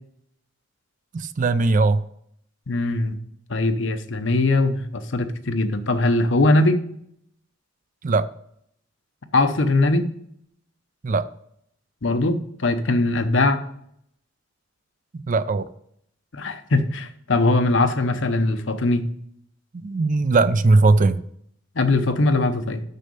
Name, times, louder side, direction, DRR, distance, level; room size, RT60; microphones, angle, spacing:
voice 1, 1.1-2.0 8.0-8.3 11.0-11.3 15.1-15.7 19.8-21.2, right 3 dB, 40° right, 0.4 m, -19 dB
voice 2, 2.7-3.2 3.5-6.8 9.3-10.1 12.0-13.6 16.3-19.0 21.8-22.8, left 2 dB, 65° left, 0.8 m, -21 dB
6.6 x 6.3 x 6.9 m
head